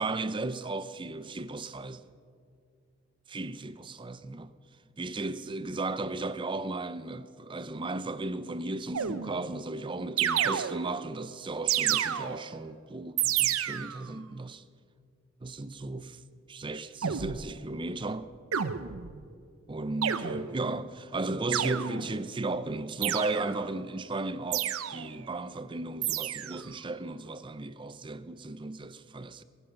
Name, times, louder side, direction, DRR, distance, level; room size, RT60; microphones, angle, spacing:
voice 1, 0.0-2.0 3.3-4.5 5.0-14.6 15.4-16.2 16.5-18.3 19.7-29.4, right 2 dB, 25° right, 0.5 m, -35 dB
sound 1, 8.9-9.6 10.2-11.1 11.7-12.6 13.2-14.1 17.0-17.5 18.5-19.2 20.0-20.7 21.5-22.3 23.0-23.7 24.5-25.2 26.0-26.7, right 9 dB, 85° right, 0.7 m, -30 dB
19.5 x 11.5 x 5.9 m
head